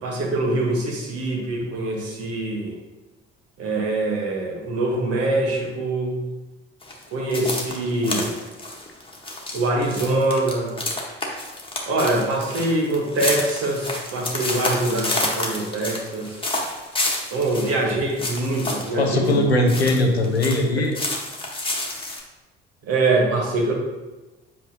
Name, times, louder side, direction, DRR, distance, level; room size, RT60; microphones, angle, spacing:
voice 1, 0.0-2.7 3.6-6.2 7.1-8.3 9.5-10.7 11.9-16.4 17.3-19.4 22.8-23.7, right 2 dB, 50° right, -1 dB, 1.6 m, -24 dB
sound 1, 6.8-20.6 20.9-22.2, left 2 dB, 15° left, 1.5 m, -29 dB
voice 2, 19.0-21.0, left 1 dB, 90° left, 2 dB, 0.7 m, -20 dB
7.9 x 4.4 x 2.9 m, 1.1 s
figure-of-eight pair, 50°, 31 cm